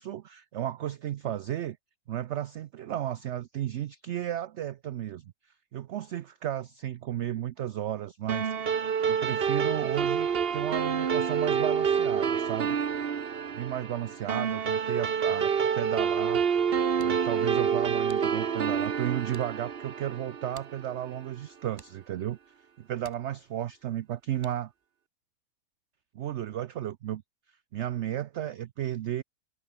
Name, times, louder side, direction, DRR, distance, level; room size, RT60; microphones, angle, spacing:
voice 1, 0.0-1.8 2.1-5.3 5.7-12.8 13.5-16.4 17.0-22.4 22.8-24.7 26.1-27.2 27.7-29.2, right 12 dB, 70° right, 0.7 m, -34 dB
sound 1, 8.3-21.0, right 7 dB, 40° right, 1.1 m, -28 dB
sound 2, 20.1-24.9, equal, 10° right, 7.4 m, -60 dB
omnidirectional pair, 1.8 m